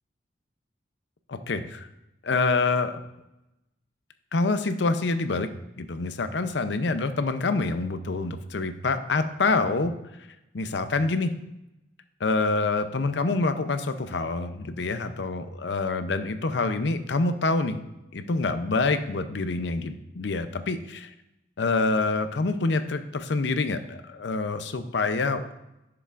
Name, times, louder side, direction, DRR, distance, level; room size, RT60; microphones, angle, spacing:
voice 1, 1.3-1.9 2.2-2.9 4.3-5.5 5.8-9.9 10.5-11.3 12.2-17.8 18.1-21.1 21.6-25.5, left 3 dB, 75° left, 10 dB, 0.6 m, -26 dB
10.0 x 6.8 x 2.5 m, 0.91 s
head